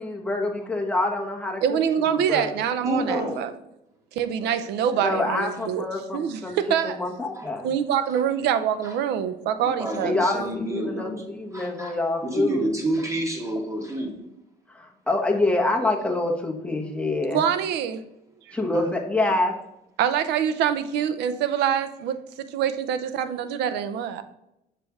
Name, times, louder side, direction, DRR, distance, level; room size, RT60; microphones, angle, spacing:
voice 1, 0.0-2.5 5.0-6.6 6.8-7.7 10.0-12.7 14.7-17.4 18.5-19.5, left 2 dB, 5° left, 0 dB, 1.2 m, -26 dB
voice 2, 1.6-3.5 4.1-5.9 6.1-7.0 7.6-10.2 17.3-18.0 18.5-18.6 20.0-24.2, right 8 dB, 80° right, 11 dB, 0.6 m, -25 dB
voice 3, 2.8-3.5 4.4-4.6 4.9-5.0 7.3-7.5 8.8-8.9 9.8-14.1 18.7-19.0, right 1 dB, 20° right, 1 dB, 1.8 m, -29 dB
6.8 x 3.3 x 4.7 m, 0.84 s
cardioid pair, 110°, 17 cm